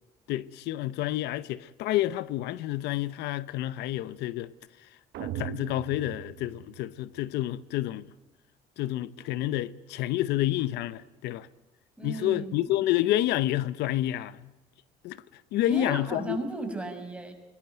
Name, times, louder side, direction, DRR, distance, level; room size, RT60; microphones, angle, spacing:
voice 1, 0.3-4.5 5.2-8.1 8.8-11.5 12.0-14.5 15.0-15.2 15.5-16.4, left 14 dB, 85° left, 0.8 m, -29 dB
sound 1, 5.1-7.3, right 12 dB, 80° right, 1.3 m, -39 dB
voice 2, 12.0-12.7 15.6-17.3, right 2 dB, 5° right, 5.9 m, -35 dB
25.0 x 20.5 x 9.0 m
cardioid pair, 110°, 17 cm